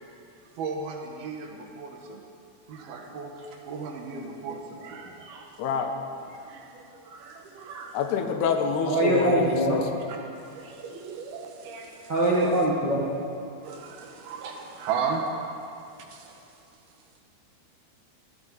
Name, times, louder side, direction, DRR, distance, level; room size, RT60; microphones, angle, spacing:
voice 1, 0.6-2.2 2.7-5.6 6.3-6.7 6.9-8.0 10.1-10.2 10.5-12.5 13.6-15.4 16.1-16.4, right 5 dB, 70° right, 2 dB, 3.1 m, -36 dB
voice 2, 5.6-6.0 7.9-9.8, left 6 dB, 80° left, 5 dB, 3.0 m, -27 dB
voice 3, 8.8-9.8 12.1-13.0, right 1 dB, 45° right, -7 dB, 1.4 m, -23 dB
21.0 x 15.0 x 4.1 m, 2.6 s
omnidirectional pair, 4.7 m